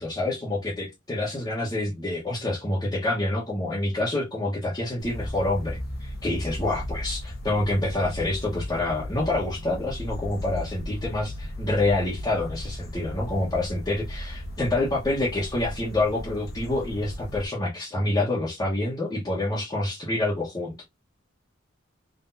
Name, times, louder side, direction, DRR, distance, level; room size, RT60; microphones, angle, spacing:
voice 1, 0.0-20.8, left 2 dB, 20° left, 1.2 m, -27 dB
sound 1, 5.0-17.4, left 1 dB, 50° left, 1.1 m, -36 dB
3.9 x 3.4 x 2.7 m
head